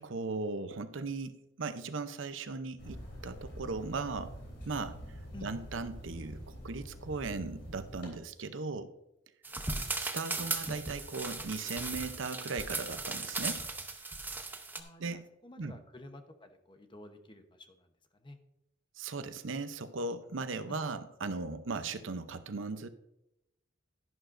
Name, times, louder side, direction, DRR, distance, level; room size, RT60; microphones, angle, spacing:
voice 1, 0.0-4.3 4.7-5.0 5.4-8.9 10.0-13.6 15.0-15.2 15.6-15.8 19.0-22.9, right 3 dB, 75° right, 11 dB, 0.7 m, -38 dB
sound 1, 2.8-8.1, equal, 60° left, 3.2 m, -46 dB
voice 2, 5.3-5.6 14.7-17.9 18.1-18.4 20.7-21.0, left 1 dB, 25° left, 7 dB, 0.9 m, -51 dB
sound 2, 9.4-14.8, right 3 dB, 10° right, 0.8 m, -37 dB
11.5 x 11.0 x 2.6 m, 0.87 s
head